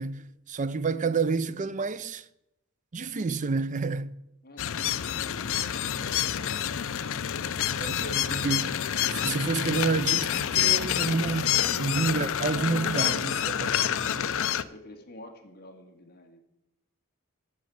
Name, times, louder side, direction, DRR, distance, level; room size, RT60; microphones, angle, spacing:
voice 1, 0.0-2.2 2.9-4.1 7.8-8.8 9.1-14.2, right 4 dB, 35° right, 0.5 m, -29 dB
voice 2, 4.4-6.8 14.5-16.4, left 1 dB, 45° left, 1.8 m, -49 dB
sound 1, 4.6-14.6, left 10 dB, 60° left, 0.5 m, -28 dB
10.0 x 7.5 x 9.3 m
head